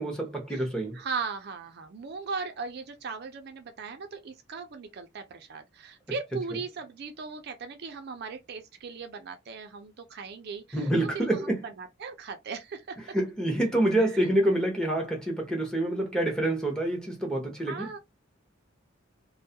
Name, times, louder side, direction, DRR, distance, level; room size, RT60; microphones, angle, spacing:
voice 1, 0.0-1.0 10.7-11.6 13.1-17.9, right 1 dB, 5° left, 0.7 m, -27 dB
voice 2, 0.9-13.2 14.0-14.1 17.7-18.0, right 5 dB, 55° right, 0.4 m, -38 dB
2.3 x 2.1 x 2.6 m
head